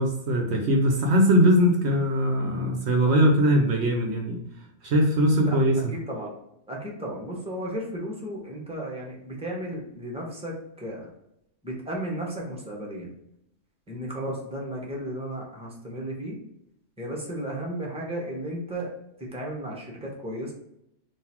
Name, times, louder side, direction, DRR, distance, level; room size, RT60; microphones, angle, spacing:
voice 1, 0.0-4.4 4.8-5.9, equal, 65° right, 2 dB, 1.0 m, -21 dB
voice 2, 5.9-6.3 6.7-11.1 11.6-13.1 13.9-16.4 17.0-18.9 19.2-20.5, right 1 dB, 5° right, -2 dB, 1.1 m, -34 dB
3.8 x 2.7 x 4.3 m, 0.78 s
omnidirectional pair, 1.3 m